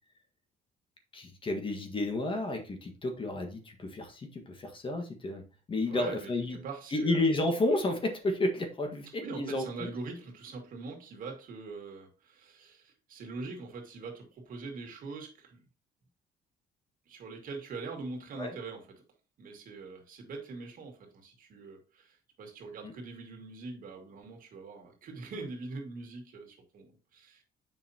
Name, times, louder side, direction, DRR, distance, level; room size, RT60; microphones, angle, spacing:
voice 1, 1.1-5.4 5.7-6.6 6.9-9.9 18.4-18.5 22.8-22.9, left 2 dB, 30° left, 1.6 m, -31 dB
voice 2, 5.9-7.2 9.2-15.6 17.1-18.9 19.4-27.4, right 3 dB, 55° right, 2.3 m, -43 dB
7.3 x 5.7 x 2.8 m
cardioid pair, 110°, 17 cm